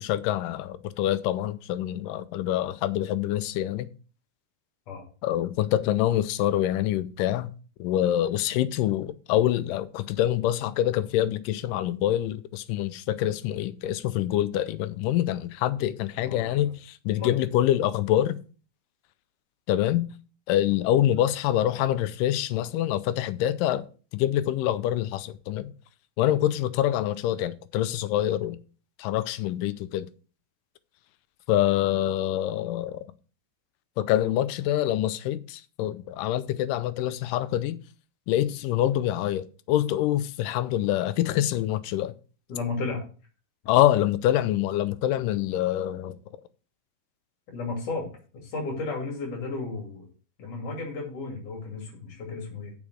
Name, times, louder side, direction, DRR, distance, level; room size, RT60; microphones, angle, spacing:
voice 1, 0.0-3.9 5.2-7.5 7.8-18.4 19.7-20.1 20.5-23.9 24.1-25.7 26.2-28.6 29.0-30.1 31.5-33.0 34.0-37.8 38.3-42.1 43.7-46.2, left 12 dB, 85° left, 2.2 m, -25 dB
voice 2, 16.2-16.7 17.2-17.3 42.5-43.0 47.5-48.1 48.3-50.1 50.4-52.7, left 3 dB, 70° left, 4.0 m, -33 dB
7.1 x 6.4 x 6.3 m
omnidirectional pair, 3.8 m